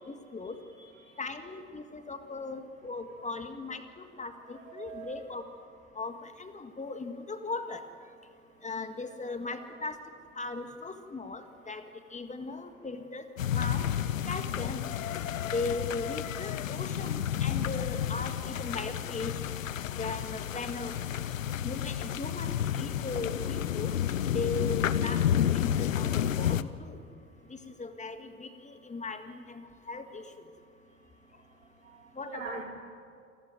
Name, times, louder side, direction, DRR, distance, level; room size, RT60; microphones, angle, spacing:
voice 1, 0.1-0.6 1.2-5.4 6.0-7.8 8.6-10.0 10.4-11.8 12.1-13.2 13.5-13.9 14.3-14.9 15.5-19.3 20.0-20.9 21.6-23.9 24.3-25.2 25.5-27.0 27.8-30.2 32.2-32.6, left 3 dB, 20° left, 8 dB, 1.9 m, -38 dB
voice 2, 0.8-1.2 4.5-5.2 31.8-32.6, right 6 dB, 85° right, -1 dB, 4.4 m, -43 dB
sound 1, 13.4-26.6, left 10 dB, 85° left, 0.7 m, -31 dB
27.5 x 14.5 x 9.2 m, 2.4 s
figure-of-eight pair, 65°, 39 cm